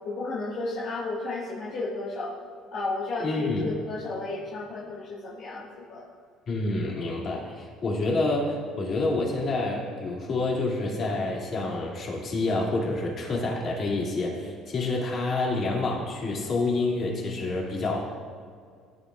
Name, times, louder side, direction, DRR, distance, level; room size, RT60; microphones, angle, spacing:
voice 1, 0.0-2.3 2.7-6.1, left 2 dB, 60° left, -7 dB, 1.7 m, -33 dB
voice 2, 3.2-3.7 6.5-18.0, left 2 dB, 45° left, -3 dB, 2.6 m, -28 dB
16.5 x 9.2 x 2.5 m, 2.1 s
cardioid pair, 120°, 0 cm